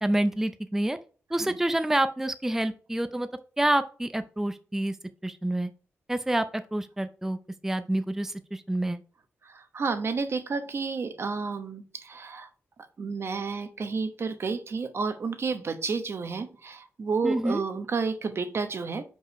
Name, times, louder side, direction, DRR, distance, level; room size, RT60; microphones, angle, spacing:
voice 1, 0.0-1.0 1.3-3.3 3.6-5.0 5.2-5.7 6.1-7.4 7.6-9.0 17.2-17.6, right 1 dB, 10° right, 10 dB, 0.4 m, -27 dB
voice 2, 9.4-12.5 13.0-19.0, right 4 dB, 60° right, 8 dB, 1.0 m, -31 dB
5.5 x 4.8 x 4.6 m, 0.39 s
cardioid pair, 70°, 5 cm